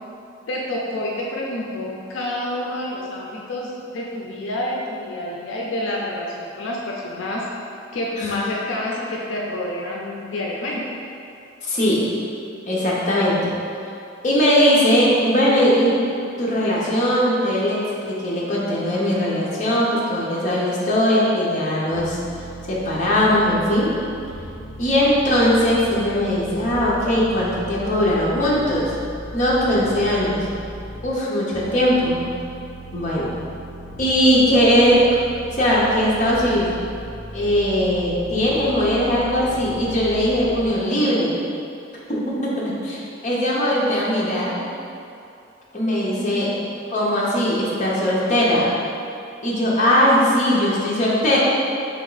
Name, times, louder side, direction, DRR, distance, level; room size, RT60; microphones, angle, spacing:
voice 1, 0.5-7.4 7.9-11.0 24.8-25.2 46.1-46.5, left 1 dB, 80° left, -3 dB, 0.4 m, -28 dB
voice 2, 11.6-12.0 12.7-13.5 14.2-16.0 16.4-22.2 22.7-23.9 24.8-28.9 29.3-30.5 31.0-32.2 32.9-33.3 34.0-35.0 35.6-36.7 37.3-41.4 42.1-44.6 45.7-46.5 46.9-48.7 49.4-51.4, equal, 40° left, -6 dB, 0.8 m, -19 dB
sound 1, 21.9-31.1 31.5-40.7, equal, 55° left, 1.0 m, -37 dB
3.5 x 3.0 x 3.9 m, 2.5 s
head